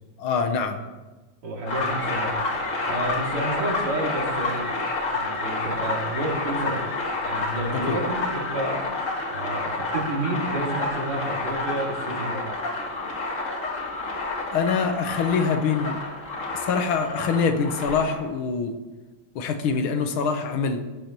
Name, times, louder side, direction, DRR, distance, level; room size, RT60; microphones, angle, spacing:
voice 1, 0.2-0.8 7.9-8.0 14.5-16.0 16.5-18.8 19.4-20.8, left 5 dB, 75° left, 7 dB, 1.8 m, -24 dB
voice 2, 1.4-2.3 2.8-4.9 5.1-6.8 7.2-8.9 9.3-12.4, right 2 dB, 80° right, -3 dB, 3.6 m, -30 dB
sound 1, 1.7-18.2, left 3 dB, 40° left, 1.9 m, -29 dB
17.0 x 11.0 x 3.0 m, 1.2 s
omnidirectional pair, 2.4 m